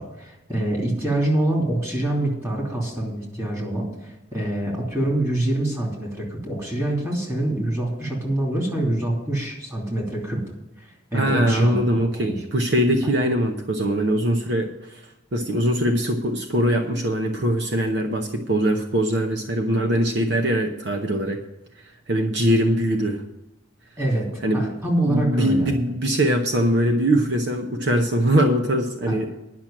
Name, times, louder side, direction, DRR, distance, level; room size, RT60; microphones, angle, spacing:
voice 1, 0.0-10.4 10.8-11.8 12.1-12.4 24.0-24.3 24.5-25.7 29.0-29.1, right 1 dB, 15° right, -2 dB, 2.9 m, -25 dB
voice 2, 11.1-15.0 15.3-21.4 22.1-23.2 24.4-24.8 25.0-29.3, equal, 60° right, 5 dB, 0.8 m, -22 dB
10.5 x 6.1 x 8.8 m, 0.94 s
head